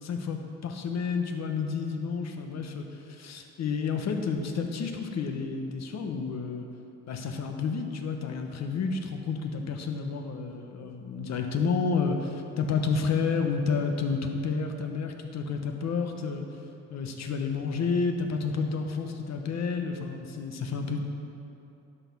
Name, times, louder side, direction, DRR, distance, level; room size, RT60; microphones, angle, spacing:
voice 1, 0.0-6.7 7.1-16.4 16.9-21.0, left 5 dB, 60° left, 4 dB, 1.1 m, -30 dB
11.0 x 6.3 x 5.5 m, 2.9 s
cardioid pair, 90°, 30 cm